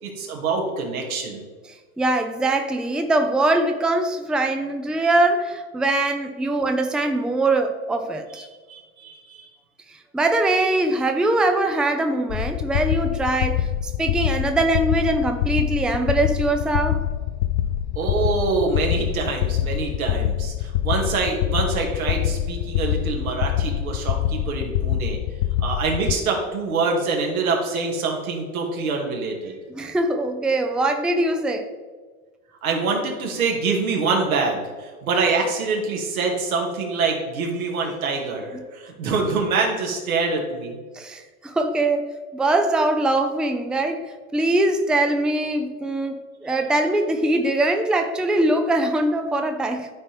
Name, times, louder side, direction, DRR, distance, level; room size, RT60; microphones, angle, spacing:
voice 1, 0.0-1.4 8.7-9.5 18.0-25.2 25.6-29.6 32.6-40.8, right 4 dB, 80° right, 2.1 m, -25 dB
voice 2, 2.0-8.5 9.9-17.1 29.7-31.7 40.9-49.9, right 2 dB, ahead, 0.5 m, -22 dB
sound 1, 12.3-26.1, left 11 dB, 50° left, 0.4 m, -25 dB
13.0 x 4.3 x 3.4 m
hypercardioid pair, 90°, 42 cm